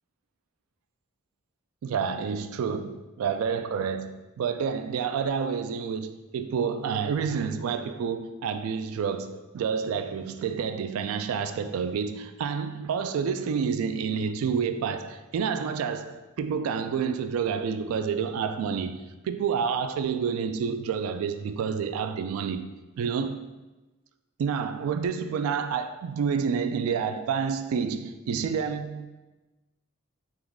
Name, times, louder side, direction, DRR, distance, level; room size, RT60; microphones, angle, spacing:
voice 1, 1.8-22.7 23.0-23.5 24.4-29.1, right 6 dB, 90° right, 0.3 m, -29 dB
3.7 x 3.0 x 3.5 m
head